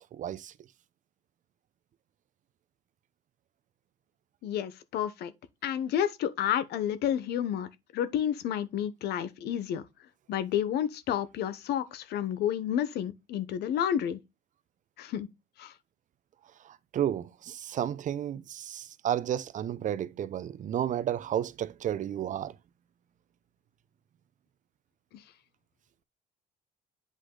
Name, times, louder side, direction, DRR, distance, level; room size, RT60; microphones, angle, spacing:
voice 1, 0.1-0.5 16.6-22.5, right 10 dB, 50° right, 0.6 m, -32 dB
voice 2, 4.4-5.3 5.6-7.7 7.9-9.8 10.3-14.2 15.0-15.3 15.6-15.7, left 10 dB, 75° left, 0.9 m, -30 dB
8.2 x 4.9 x 3.9 m
cardioid pair, 110°, 17 cm